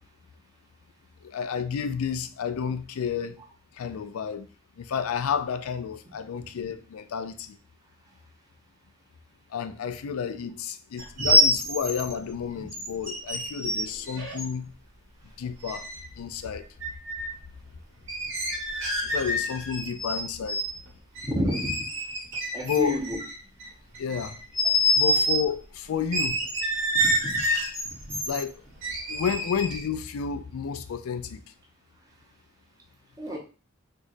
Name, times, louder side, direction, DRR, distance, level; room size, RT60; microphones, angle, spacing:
voice 1, 1.2-3.4 3.7-4.5 4.8-7.6 9.5-14.7 15.4-15.9 16.2-16.7 19.0-20.6 22.6-23.0 24.0-24.4 24.9-26.4 28.3-28.6 29.1-31.4, left 7 dB, 80° left, 0.4 m, -31 dB
sound 1, 11.0-12.1 12.7-14.5 15.7-16.1 16.8-17.3 18.1-20.2 20.5-20.7 21.2-23.7 23.9-25.4 26.1-28.4 28.8-29.9, equal, 60° right, 1.4 m, -27 dB
voice 2, 21.2-21.8 22.5-23.2 27.0-27.4 28.1-28.2 33.2-33.4, equal, 15° right, 0.9 m, -30 dB
4.5 x 2.4 x 2.5 m
head